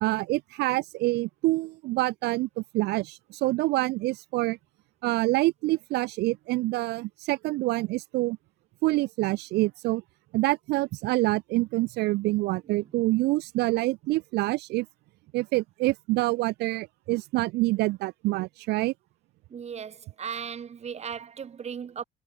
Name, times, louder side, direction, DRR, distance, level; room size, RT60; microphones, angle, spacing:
voice 1, 0.0-4.6 5.0-8.4 8.8-10.0 10.3-14.9 15.3-18.9, right 20 dB, 80° right, 0.4 m, -26 dB
voice 2, 19.5-22.0, right 7 dB, 40° right, 3.4 m, -37 dB
cardioid pair, 110°, 17 cm